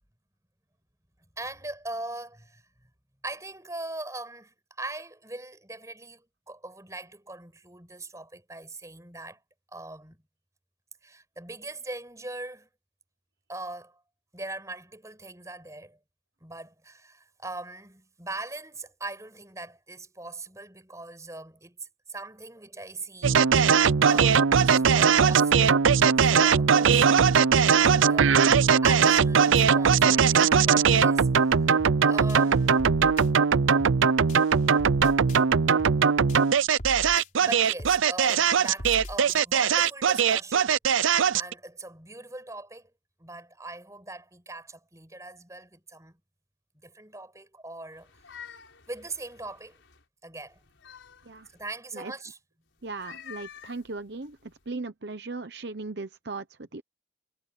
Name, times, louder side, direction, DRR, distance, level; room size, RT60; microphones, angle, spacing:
voice 1, 1.4-2.6 3.2-9.4 9.7-10.2 11.0-12.7 13.5-14.0 14.3-16.0 16.4-23.7 24.1-25.8 26.3-27.3 27.7-28.4 28.8-31.7 32.1-32.8 37.4-40.8 41.3-42.9 43.2-46.1 46.8-48.1 48.9-49.8 50.2-50.6 51.5-52.4, right 2 dB, 15° right, 6.1 m, -40 dB
sound 1, 23.2-41.5, right 6 dB, 85° right, 0.5 m, -20 dB
sound 2, 31.8-32.0 32.3-33.3 33.8-34.0 34.3-35.4 35.8-36.0 36.3-37.3 37.8-38.0 38.3-39.4, left 1 dB, 40° left, 4.9 m, -40 dB
sound 3, 48.0-50.0 50.5-51.7 52.8-54.7, left 8 dB, 75° left, 4.7 m, -49 dB
voice 2, 52.8-56.8, right 3 dB, 60° right, 0.9 m, -37 dB
head